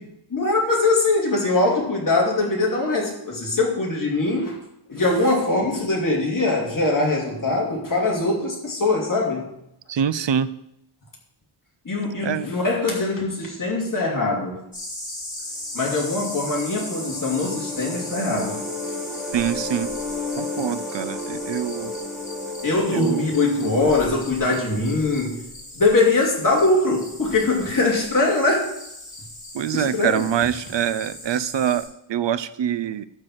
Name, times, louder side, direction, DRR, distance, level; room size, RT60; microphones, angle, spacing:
voice 1, 0.3-4.6 4.9-9.5 11.8-14.6 15.7-18.6 22.6-25.3 25.8-28.7 29.7-30.2, left 2 dB, 40° left, -2 dB, 2.9 m, -22 dB
voice 2, 9.9-10.5 12.2-12.5 19.3-19.9 20.4-21.9 22.9-23.3 29.5-33.1, right 9 dB, 60° right, 15 dB, 0.6 m, -25 dB
sound 1, 14.7-31.9, left 1 dB, 15° left, 4.7 m, -38 dB
sound 2, 16.1-25.0, left 2 dB, ahead, 2.6 m, -33 dB
12.0 x 4.7 x 7.8 m, 0.78 s
wide cardioid pair, 140°, 49 cm